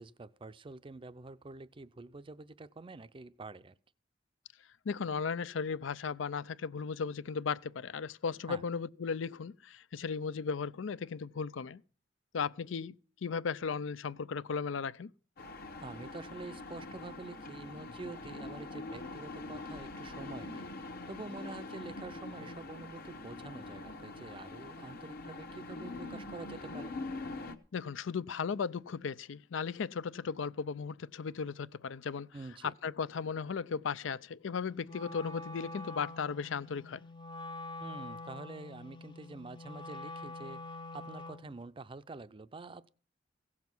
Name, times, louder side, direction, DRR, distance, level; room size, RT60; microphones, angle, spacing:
voice 1, 0.0-3.7 8.5-8.6 15.8-20.7 21.1-26.9 32.3-32.7 37.8-40.6 40.9-42.9, right 3 dB, 25° right, 0.5 m, -47 dB
voice 2, 4.9-11.8 12.3-12.9 13.2-15.1 27.7-32.3 32.6-37.0, left 5 dB, 80° left, 0.5 m, -36 dB
sound 1, 15.4-27.6, left 2 dB, 55° left, 1.1 m, -44 dB
Wind instrument woodwind instrument, 34.8-41.5, left 2 dB, 25° left, 0.6 m, -45 dB
16.5 x 7.3 x 6.1 m
head